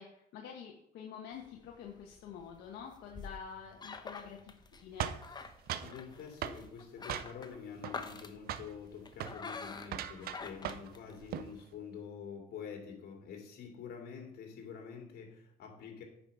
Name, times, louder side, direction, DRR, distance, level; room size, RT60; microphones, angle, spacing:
voice 1, 0.0-4.5 4.8-5.1, left 7 dB, 85° left, 0 dB, 1.5 m, -47 dB
sound 1, 1.3-11.6, left 4 dB, 25° left, 1.0 m, -48 dB
sound 2, 5.0-6.0 6.4-6.6 7.1-7.6 7.8-8.2 8.5-8.7 9.1-9.4 9.9-11.0 11.2-11.5, right 10 dB, 65° right, 0.7 m, -39 dB
voice 2, 5.8-16.0, left 7 dB, 65° left, 1 dB, 3.1 m, -47 dB
9.0 x 6.1 x 5.6 m, 0.79 s
cardioid pair, 110°, 17 cm